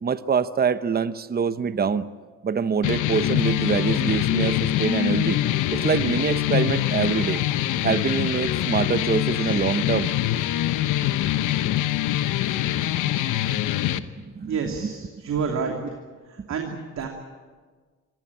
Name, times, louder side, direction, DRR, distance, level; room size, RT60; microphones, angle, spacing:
voice 1, 0.0-2.0 2.4-5.4 5.7-7.4 7.8-10.1 13.9-14.7 16.4-16.5, right 6 dB, 30° right, 13 dB, 0.9 m, -25 dB
sound 1, 2.8-14.0, left 13 dB, 85° left, 1.0 m, -24 dB
voice 2, 14.4-15.8 16.5-17.1, right 6 dB, 65° right, 2 dB, 3.1 m, -29 dB
26.0 x 16.5 x 8.7 m, 1.4 s
cardioid pair, 90°, 30 cm